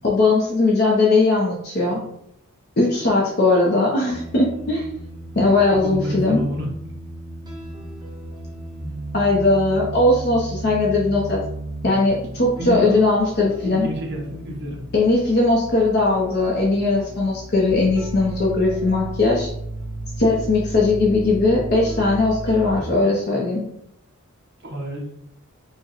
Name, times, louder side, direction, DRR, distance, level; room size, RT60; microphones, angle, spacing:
voice 1, 0.0-2.0 2.8-4.8 5.4-6.4 9.1-11.4 11.8-13.9 14.9-19.5 20.2-23.6, left 2 dB, 45° left, -3 dB, 0.6 m, -19 dB
sound 1, 4.1-23.0, right 2 dB, 20° right, 0.6 m, -34 dB
voice 2, 5.7-6.7 12.6-12.9 13.6-14.8 24.6-25.1, equal, 50° right, -2 dB, 0.9 m, -28 dB
4.5 x 2.2 x 3.0 m, 0.75 s
head